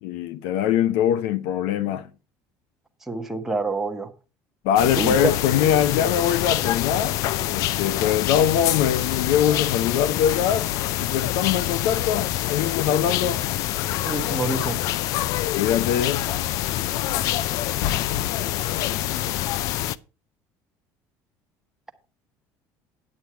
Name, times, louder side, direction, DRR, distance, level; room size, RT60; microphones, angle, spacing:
voice 1, 0.0-2.1 4.6-7.2 7.4-10.7 11.0-13.4 15.6-16.3, left 9 dB, 85° left, 0.8 m, -23 dB
voice 2, 3.1-4.1 5.0-5.3 14.0-14.8, right 3 dB, 5° right, 1.0 m, -26 dB
sound 1, 4.8-20.0, left 14 dB, 55° left, 0.5 m, -26 dB
9.8 x 8.7 x 4.5 m
cardioid pair, 175°, 7 cm